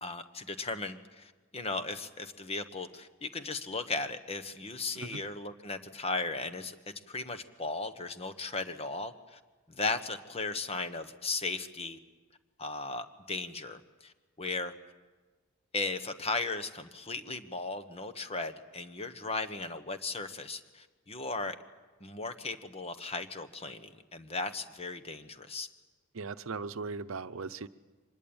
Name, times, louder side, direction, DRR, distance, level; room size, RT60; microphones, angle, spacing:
voice 1, 0.0-6.8 7.1-9.4 9.7-12.0 12.6-14.1 14.4-14.7 15.7-21.6 22.0-25.7, left 3 dB, 30° left, 10 dB, 1.3 m, -36 dB
voice 2, 26.1-27.7, right 4 dB, 70° right, 12 dB, 0.8 m, -38 dB
25.0 x 20.5 x 8.9 m, 1.3 s
head